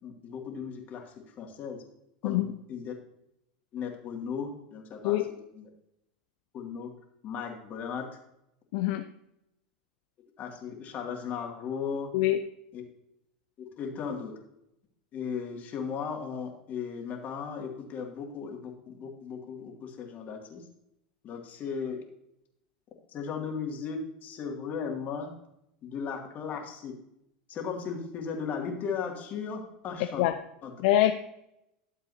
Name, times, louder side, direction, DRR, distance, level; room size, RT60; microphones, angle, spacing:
voice 1, 0.0-1.8 2.2-2.9 3.7-5.2 5.5-5.7 6.5-6.9 7.2-8.1 10.4-12.1 12.7-12.8 13.6-14.3 15.1-20.6 21.2-22.0 23.1-25.3 25.8-26.9 27.5-30.2 30.6-30.7, left 6 dB, 40° left, 1 dB, 2.3 m, -36 dB
voice 2, 8.7-9.0 12.1-12.4 30.2-30.4 30.8-31.1, left 14 dB, 60° left, 8 dB, 0.6 m, -24 dB
12.5 x 7.4 x 2.7 m, 0.82 s
hypercardioid pair, 90°, 5 cm